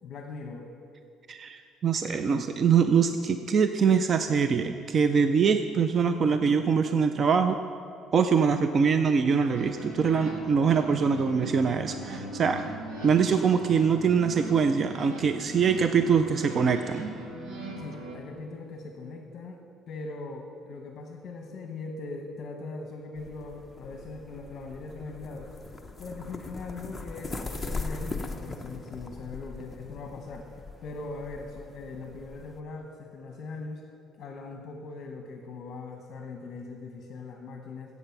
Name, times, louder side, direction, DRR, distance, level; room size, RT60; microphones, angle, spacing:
voice 1, 0.0-0.7 11.7-11.8 17.8-19.6 19.9-25.6 26.0-30.5 30.8-33.8 34.2-38.0, left 3 dB, 40° left, 3 dB, 1.0 m, -40 dB
voice 2, 1.3-7.6 8.1-12.6 13.0-17.1, right 6 dB, 30° right, 9 dB, 0.4 m, -23 dB
sound 1, 9.4-18.1, right 1 dB, 85° right, 2.4 m, -40 dB
sound 2, 23.2-32.6, left 3 dB, 10° left, 0.7 m, -40 dB
14.5 x 8.2 x 5.9 m, 2.5 s
cardioid pair, 165°, 0 cm